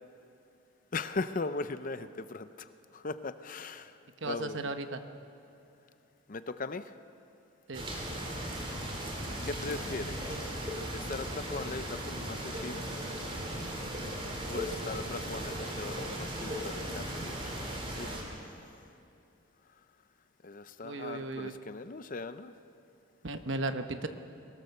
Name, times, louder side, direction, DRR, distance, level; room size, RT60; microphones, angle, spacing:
voice 1, 0.9-4.0 4.2-4.7 6.3-6.9 9.4-10.6 10.9-12.8 13.4-13.5 14.4-18.8 20.4-22.5, left 3 dB, 40° left, 12 dB, 0.6 m, -39 dB
voice 2, 4.2-5.0 7.7-7.9 20.8-21.6 23.2-24.1, right 2 dB, 60° right, 8 dB, 1.0 m, -35 dB
sound 1, 7.7-18.2, right 1 dB, 25° right, 3.2 m, -37 dB
23.0 x 18.0 x 6.7 m, 2.7 s
head